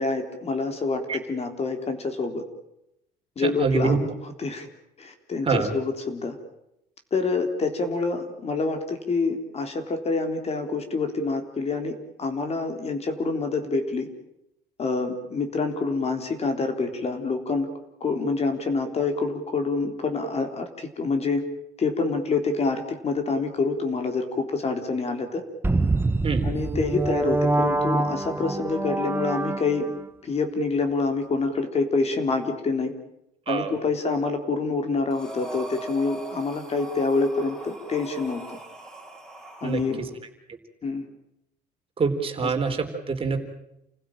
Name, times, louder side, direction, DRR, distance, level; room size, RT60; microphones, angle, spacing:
voice 1, 0.0-2.4 3.4-4.7 5.0-6.4 7.1-14.1 14.8-17.7 18.0-21.4 21.8-25.4 26.4-29.9 30.2-32.9 33.5-38.6 39.6-40.0 40.8-41.1 42.4-42.5, left 3 dB, 40° left, 6 dB, 3.7 m, -27 dB
voice 2, 3.4-4.0 5.4-5.7 26.2-26.5 33.5-33.8 39.6-40.1 42.0-43.4, right 4 dB, 35° right, 5 dB, 4.0 m, -25 dB
sound 1, 25.6-30.1, right 2 dB, 15° right, 1.0 m, -25 dB
Breathing, 35.1-40.0, equal, 5° left, 5.9 m, -40 dB
29.5 x 16.0 x 8.9 m, 0.82 s
cardioid pair, 110°, 17 cm